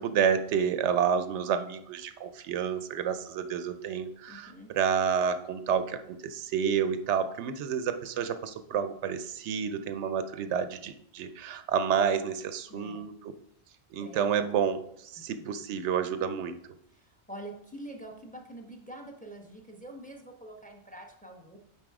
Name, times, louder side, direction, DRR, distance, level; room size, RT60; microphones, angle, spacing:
voice 1, 0.0-13.3 13.9-14.8 15.1-16.6, right 7 dB, 90° right, 10 dB, 0.9 m, -29 dB
voice 2, 4.3-4.7 12.7-13.1 13.9-14.5 15.2-15.5 16.9-21.6, right 1 dB, 10° left, 2 dB, 0.9 m, -46 dB
7.7 x 4.1 x 4.7 m, 0.73 s
omnidirectional pair, 1.1 m